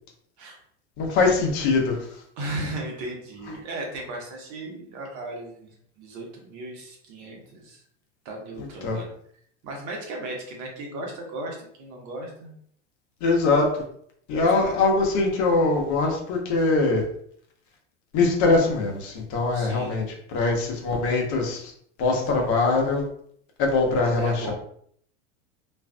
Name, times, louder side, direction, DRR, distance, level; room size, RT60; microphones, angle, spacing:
voice 1, 1.0-2.0 8.6-9.0 13.2-13.7 14.3-17.0 18.1-20.0 20.3-21.7 22.0-23.0 23.6-24.5, left 3 dB, 50° left, 1 dB, 0.9 m, -22 dB
voice 2, 2.4-5.7 6.0-7.8 8.2-9.1 9.6-12.5 14.5-14.7 19.5-20.0 22.0-22.5 24.2-24.5, right 2 dB, 50° right, 0 dB, 1.0 m, -36 dB
2.5 x 2.5 x 2.2 m, 0.63 s
hypercardioid pair, 95°, 37 cm